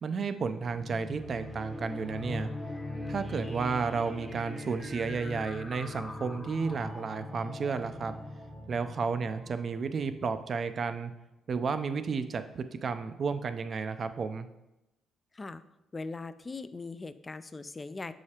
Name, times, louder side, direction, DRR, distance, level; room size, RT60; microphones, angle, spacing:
voice 1, 0.0-2.5 3.1-8.1 8.7-11.1 11.5-14.5, right 5 dB, 50° right, 10 dB, 0.4 m, -32 dB
sound 1, 0.6-10.8, left 1 dB, 5° left, 0.8 m, -41 dB
voice 2, 15.9-18.1, left 3 dB, 25° left, 13 dB, 0.3 m, -40 dB
7.1 x 4.8 x 2.9 m, 0.92 s
cardioid pair, 90°, 0 cm